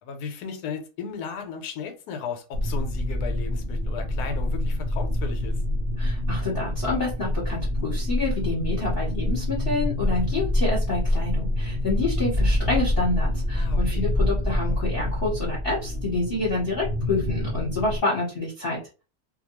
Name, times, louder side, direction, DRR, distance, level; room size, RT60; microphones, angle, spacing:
voice 1, 0.0-5.6 13.5-14.1, left 5 dB, 80° left, 1.1 m, -35 dB
sound 1, 2.5-18.0, left 1 dB, 65° right, 0.5 m, -26 dB
voice 2, 6.0-18.8, left 3 dB, 40° left, 1.1 m, -28 dB
2.7 x 2.2 x 2.9 m
omnidirectional pair, 1.7 m